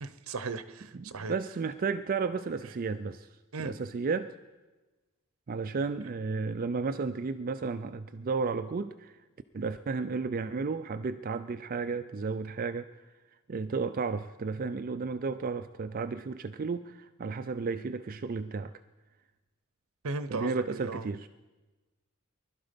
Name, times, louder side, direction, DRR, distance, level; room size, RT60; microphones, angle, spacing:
voice 1, 0.0-1.3 3.5-3.7 20.0-21.1, right 3 dB, 80° right, 13 dB, 0.8 m, -36 dB
voice 2, 0.9-3.3 3.6-4.3 5.5-9.2 9.5-12.9 13.5-18.7 20.3-21.3, right 4 dB, 40° right, 11 dB, 0.4 m, -33 dB
20.5 x 12.0 x 5.2 m, 1.2 s
head